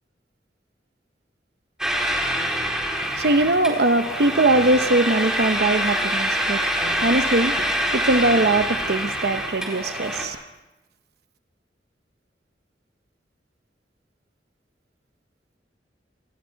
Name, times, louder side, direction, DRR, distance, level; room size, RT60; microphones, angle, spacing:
sound 1, 1.8-10.3, equal, 5° right, 4.1 m, -25 dB
voice 1, 3.2-10.4, right 2 dB, 60° right, 0.9 m, -21 dB
27.0 x 27.0 x 4.7 m
head